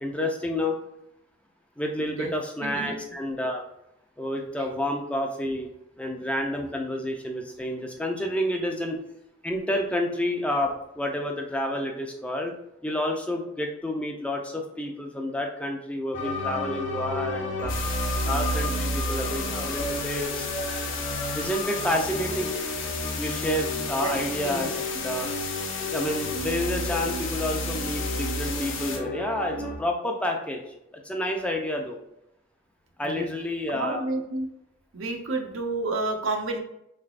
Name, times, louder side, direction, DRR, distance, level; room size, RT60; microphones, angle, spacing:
voice 1, 0.0-0.8 1.8-3.6 4.2-5.7 6.0-9.0 9.4-12.5 12.8-17.7 18.3-20.4 21.3-22.5 23.2-24.7 25.0-25.3 25.8-30.7 31.0-32.0 33.0-34.0, left 1 dB, 5° left, 2 dB, 0.3 m, -29 dB
voice 2, 2.6-2.9 8.2-8.7 24.0-24.1 24.4-24.8 33.0-33.3 33.7-34.5 34.9-36.6, right 2 dB, 80° right, 4 dB, 0.6 m, -30 dB
sound 1, 16.1-29.8, equal, 40° left, 0.7 m, -32 dB
sound 2, 17.7-29.0, left 6 dB, 75° left, 0.6 m, -34 dB
3.8 x 3.3 x 2.4 m, 0.81 s
head